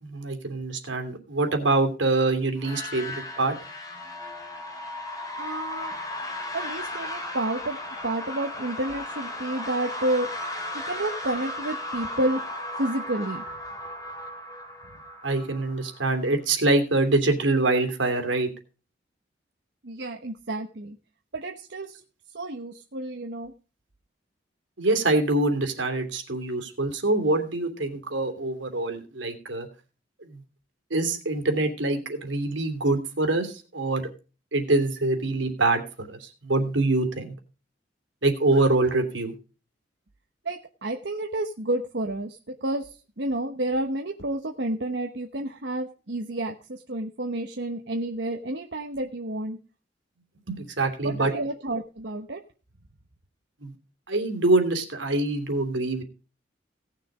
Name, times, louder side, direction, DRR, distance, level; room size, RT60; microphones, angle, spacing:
voice 1, 0.0-3.5 15.2-18.5 24.8-29.7 30.2-30.4 30.9-34.0 34.5-37.3 38.2-39.3 50.5-51.3 53.6-53.7 54.1-56.0, right 2 dB, 85° right, 5 dB, 3.0 m, -25 dB
sound 1, 2.6-16.3, left 1 dB, 20° left, 2.8 m, -36 dB
voice 2, 5.4-5.9 6.5-7.8 8.0-10.3 10.7-12.4 12.8-13.4 19.8-21.0 21.3-22.0 22.3-23.5 40.4-49.6 51.0-52.4, right 1 dB, 65° right, 3 dB, 1.2 m, -30 dB
17.5 x 6.7 x 5.0 m, 0.34 s
head